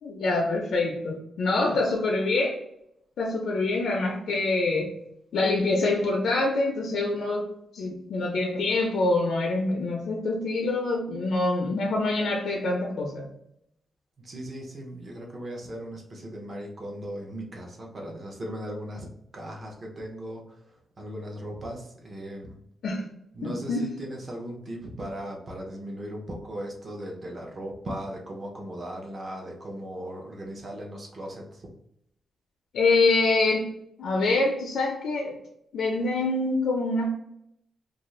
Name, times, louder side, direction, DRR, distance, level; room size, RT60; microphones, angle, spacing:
voice 1, 0.0-2.6 3.2-4.9 5.3-7.5 7.7-13.3 22.8-23.0 23.4-23.9 32.7-33.7 34.0-35.4 35.7-37.1, left 2 dB, 70° left, 0 dB, 0.5 m, -25 dB
voice 2, 14.2-19.1 19.3-20.6 21.0-22.6 23.3-31.7, equal, 35° right, 0 dB, 0.7 m, -37 dB
2.5 x 2.4 x 3.1 m, 0.77 s
wide cardioid pair, 170°, 0 cm